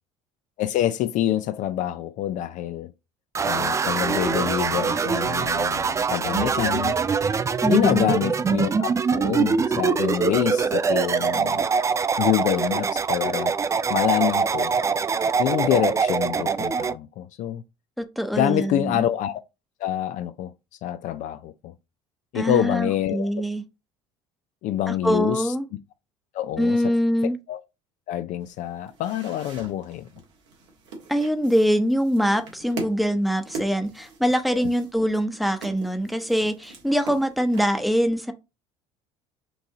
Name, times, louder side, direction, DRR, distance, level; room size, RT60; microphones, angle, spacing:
voice 1, 0.6-2.9 3.4-7.0 7.7-11.7 12.2-13.5 13.9-14.7 15.4-17.6 18.4-19.4 19.8-20.5 20.8-21.7 22.3-23.3 24.6-25.5 26.3-26.8 27.5-27.6 28.1-30.1 34.5-34.7, left 12 dB, 55° left, 0.4 m, -26 dB
sound 1, 3.3-16.9, right 5 dB, 20° right, 0.3 m, -23 dB
voice 2, 7.6-8.2 18.0-19.1 22.3-23.6 24.9-25.7 26.6-27.4 31.1-38.3, equal, ahead, 0.8 m, -23 dB
sound 2, 28.4-37.6, right 3 dB, 80° right, 1.4 m, -41 dB
4.5 x 2.6 x 3.7 m
hypercardioid pair, 70°, 15 cm